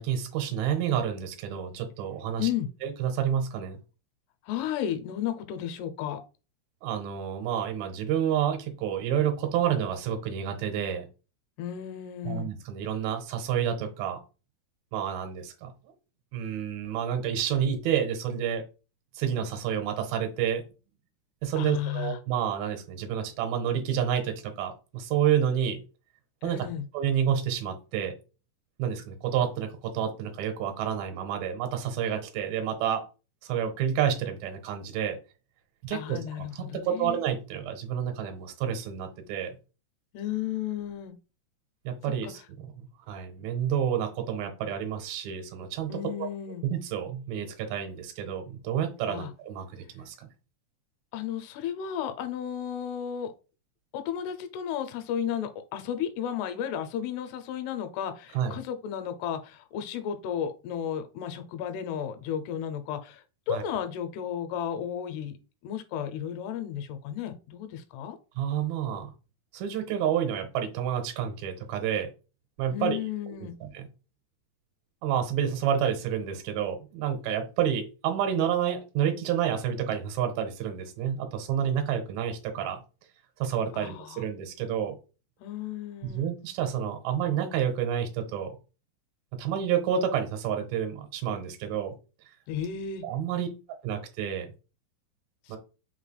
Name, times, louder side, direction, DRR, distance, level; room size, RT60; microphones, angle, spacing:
voice 1, 0.0-2.5 2.8-3.8 6.8-11.1 12.3-14.2 14.9-15.7 16.3-18.6 19.2-20.6 21.4-25.8 26.4-26.6 26.9-28.1 28.8-33.0 33.4-35.2 35.8-39.6 41.9-42.7 43.1-45.9 46.2-46.3 46.6-50.3 58.3-58.6 63.5-63.6 68.4-69.1 69.5-72.1 72.6-73.0 73.6-73.9 75.0-82.8 83.4-84.9 86.0-88.5 89.3-91.9 93.0-93.5 93.8-94.5 95.5-95.6, right 9 dB, 75° right, 5 dB, 2.5 m, -29 dB
voice 2, 4.5-6.2 11.6-12.5 21.6-22.2 26.4-26.9 35.9-37.2 40.1-41.2 42.2-42.3 45.9-46.7 49.1-49.3 51.1-53.3 53.9-65.4 65.6-68.2 72.7-73.6 83.7-84.3 85.4-86.3 92.5-93.1 95.5-95.6, left 9 dB, 85° left, 7 dB, 2.7 m, -33 dB
5.9 x 3.2 x 2.2 m, 0.32 s
omnidirectional pair, 4.7 m